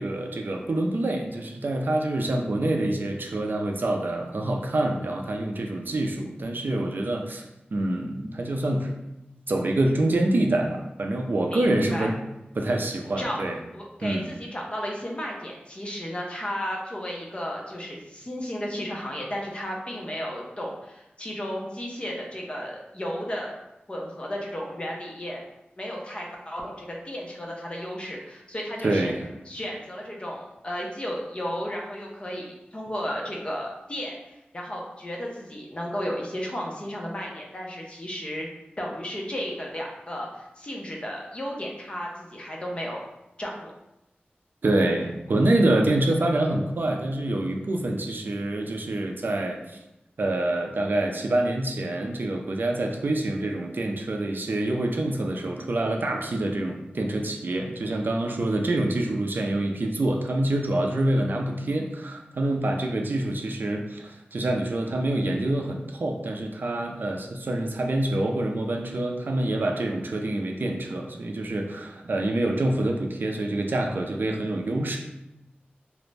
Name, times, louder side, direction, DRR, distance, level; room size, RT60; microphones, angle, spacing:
voice 1, 0.0-7.4 7.7-8.9 9.5-12.2 12.6-13.6 14.0-14.3 28.8-29.2 44.6-49.6 50.2-75.0, right 1 dB, 60° right, 2 dB, 0.3 m, -26 dB
voice 2, 11.5-12.1 13.2-13.4 13.7-23.5 23.9-25.4 25.8-29.1 29.5-38.5 38.8-43.0 43.4-43.7, equal, 30° left, -2 dB, 0.6 m, -34 dB
2.4 x 2.0 x 3.2 m, 0.91 s
wide cardioid pair, 70°, 4 cm